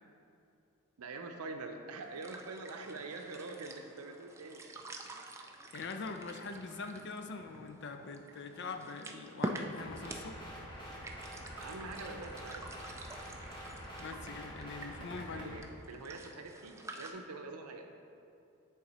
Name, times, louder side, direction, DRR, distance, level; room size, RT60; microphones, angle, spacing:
voice 1, 1.0-4.6 11.6-12.7 15.3-17.9, right 3 dB, 85° right, 5 dB, 0.6 m, -45 dB
sound 1, 1.9-17.1, right 1 dB, 10° right, 0.3 m, -47 dB
voice 2, 5.7-10.5 14.0-15.7, left 4 dB, 50° left, 6 dB, 0.5 m, -43 dB
sound 2, 9.8-15.6, equal, 20° left, 1.2 m, -46 dB
9.7 x 3.7 x 4.3 m, 2.6 s
head